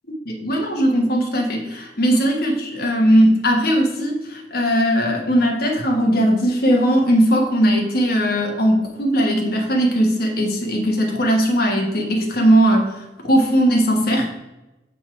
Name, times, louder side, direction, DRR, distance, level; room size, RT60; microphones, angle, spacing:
voice 1, 0.2-14.3, equal, 55° left, 1 dB, 1.5 m, -18 dB
7.5 x 4.6 x 4.6 m, 1.0 s
head